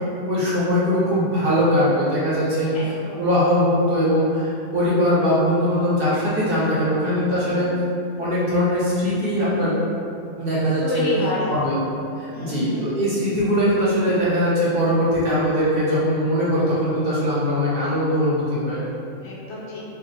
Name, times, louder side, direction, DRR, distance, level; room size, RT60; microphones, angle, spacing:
voice 1, 0.3-7.7 8.2-9.8 10.4-11.1 11.5-11.8 12.2-18.8, equal, 55° right, -8 dB, 0.8 m, -21 dB
voice 2, 2.7-3.2 7.4-7.7 10.8-11.5 12.3-12.9 19.2-19.8, left 1 dB, 70° left, -5 dB, 0.9 m, -29 dB
2.6 x 2.4 x 3.8 m, 2.6 s
omnidirectional pair, 1.3 m